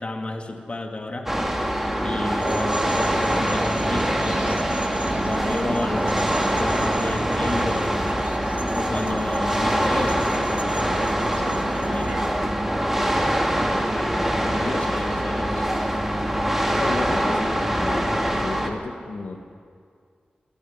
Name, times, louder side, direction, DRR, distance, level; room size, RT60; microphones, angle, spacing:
voice 1, 0.0-1.6 2.0-4.8 5.2-8.2 8.7-12.3 12.8-13.3 13.9-14.1 14.4-15.7, left 2 dB, 40° left, 2 dB, 2.4 m, -32 dB
sound 1, 1.3-18.7, equal, 10° right, 2.4 m, -24 dB
sound 2, 2.4-12.3, right 2 dB, 50° right, 1.6 m, -33 dB
voice 2, 16.8-19.4, left 3 dB, 80° left, 1 dB, 1.9 m, -33 dB
28.5 x 10.0 x 9.7 m, 2.1 s
cardioid pair, 55°, 3 cm